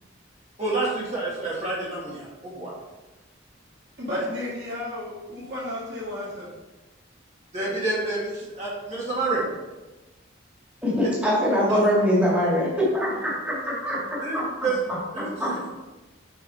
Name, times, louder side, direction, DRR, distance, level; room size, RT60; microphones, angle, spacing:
voice 1, 0.6-2.7 4.1-4.2 7.5-9.5 14.2-14.4 14.6-14.8 15.1-15.6, right 2 dB, 35° right, -6 dB, 2.3 m, -28 dB
voice 2, 4.0-6.5 11.7-11.8, left 1 dB, 60° right, -6 dB, 2.5 m, -34 dB
voice 3, 10.8-14.4 15.4-15.7, equal, 5° right, -8 dB, 2.4 m, -23 dB
6.3 x 5.9 x 4.2 m, 1.1 s
head